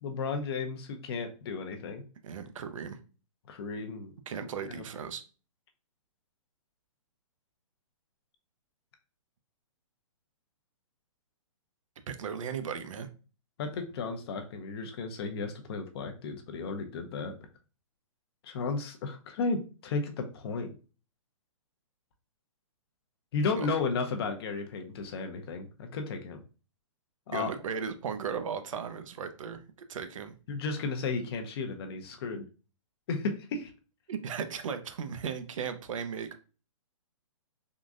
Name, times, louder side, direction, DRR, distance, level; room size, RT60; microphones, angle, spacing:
voice 1, 0.0-2.0 3.5-4.1 4.4-4.8 13.6-17.3 18.4-20.7 23.3-26.4 27.3-27.5 30.5-32.4 33.1-33.7, left 4 dB, 50° left, 0.6 m, -34 dB
voice 2, 2.2-3.0 4.3-5.2 12.1-13.1 23.6-23.7 27.3-29.6 29.9-30.3 34.1-36.4, right 7 dB, 70° right, 0.5 m, -36 dB
3.7 x 2.5 x 2.4 m
hypercardioid pair, 135°, 17 cm